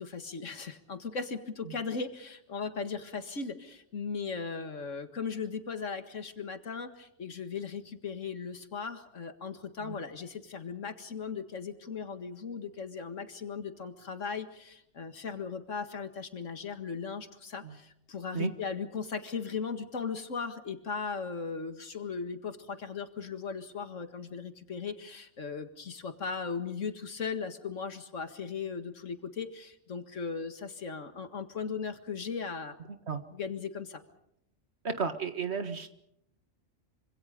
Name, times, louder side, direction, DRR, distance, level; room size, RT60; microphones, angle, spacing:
voice 1, 0.0-32.8 33.3-34.0, left 5 dB, 85° left, 8 dB, 2.2 m, -37 dB
voice 2, 34.8-35.9, right 5 dB, 60° right, 8 dB, 2.0 m, -33 dB
26.0 x 25.5 x 5.2 m, 0.77 s
omnidirectional pair, 1.3 m